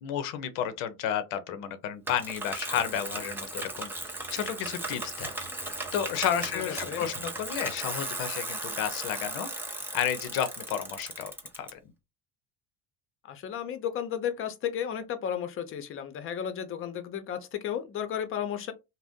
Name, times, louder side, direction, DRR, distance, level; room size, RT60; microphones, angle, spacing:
voice 1, 0.0-3.9 4.3-5.3 5.9-9.5 9.9-11.3 11.6-11.8, left 9 dB, 70° left, 0.7 m, -31 dB
Bicycle, 2.1-11.7, right 2 dB, 5° right, 0.6 m, -37 dB
voice 2, 6.5-7.1 13.2-18.7, left 9 dB, 40° left, 0.7 m, -33 dB
2.6 x 2.1 x 3.5 m
supercardioid pair, 115°, 34 cm